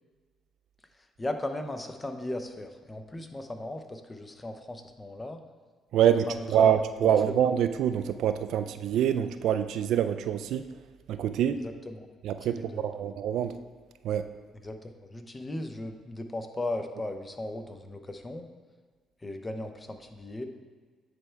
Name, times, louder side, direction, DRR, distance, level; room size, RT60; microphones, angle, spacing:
voice 1, 1.2-5.4 6.1-6.7 7.0-7.4 11.6-12.1 12.5-13.0 14.6-18.5 19.2-20.5, left 1 dB, 20° left, 7 dB, 0.7 m, -37 dB
voice 2, 5.9-10.7 11.1-11.6 12.2-13.6 14.0-14.2, right 9 dB, 75° right, 10 dB, 0.3 m, -25 dB
9.7 x 3.4 x 4.5 m, 1.5 s
supercardioid pair, 70°, 0 cm